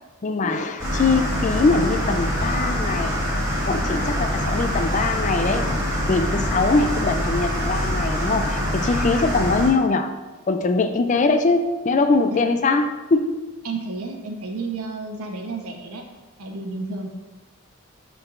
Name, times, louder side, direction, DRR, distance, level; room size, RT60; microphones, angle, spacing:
voice 1, 0.2-3.2 3.6-5.7 6.1-10.1 10.5-13.5, left 3 dB, 35° left, 8 dB, 0.3 m, -22 dB
sound 1, 0.8-9.7, equal, 15° right, 1.9 m, -24 dB
voice 2, 13.6-16.0 16.4-17.1, right 3 dB, 80° right, 3 dB, 1.0 m, -31 dB
11.5 x 4.6 x 2.5 m, 1.2 s
head